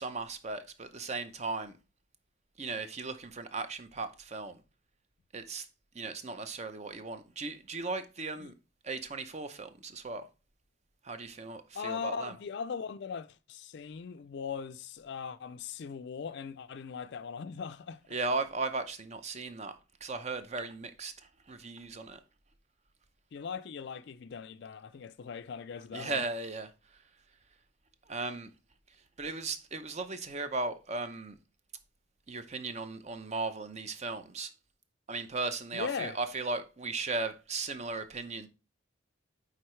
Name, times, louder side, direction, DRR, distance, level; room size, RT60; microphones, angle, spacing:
voice 1, 0.0-1.7 2.6-4.6 5.3-5.7 5.9-8.5 8.8-10.3 11.0-12.3 18.1-22.2 25.9-26.7 28.1-28.5 29.2-31.4 32.3-34.5 35.1-38.5, right 3 dB, 35° right, 0.6 m, -37 dB
voice 2, 11.7-18.0 23.3-26.3 35.7-36.2, left 6 dB, 55° left, 0.4 m, -39 dB
9.1 x 3.8 x 3.2 m
head